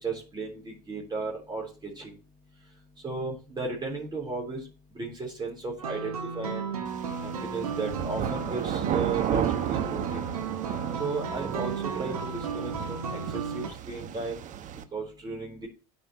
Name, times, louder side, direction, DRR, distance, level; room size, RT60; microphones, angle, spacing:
voice 1, 0.0-2.1 3.0-4.6 5.0-6.7 7.2-10.3 11.0-14.4 14.9-15.7, right 3 dB, 25° right, -1 dB, 3.6 m, -35 dB
sound 1, 5.8-13.7, right 6 dB, 90° right, 1.7 m, -34 dB
sound 2, 6.8-14.8, right 10 dB, 45° right, 1.0 m, -33 dB
12.5 x 5.3 x 3.0 m, 0.33 s
hypercardioid pair, 80°, 18 cm